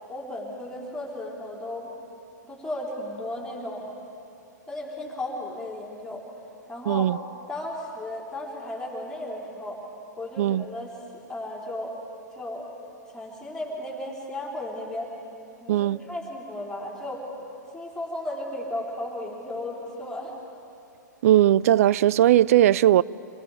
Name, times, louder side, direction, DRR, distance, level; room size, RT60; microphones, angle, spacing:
voice 1, 0.1-1.9 2.4-3.9 4.7-6.3 6.7-7.1 7.5-9.8 10.2-10.9 11.3-12.0 12.4-12.7 13.1-15.1 15.6-17.3 17.7-20.3, left 1 dB, 5° left, 4.0 m, -35 dB
voice 2, 6.9-7.2 10.4-10.6 15.7-16.0 21.2-23.0, right 12 dB, 50° right, 0.4 m, -19 dB
28.0 x 22.5 x 5.0 m
figure-of-eight pair, 110°, 10 cm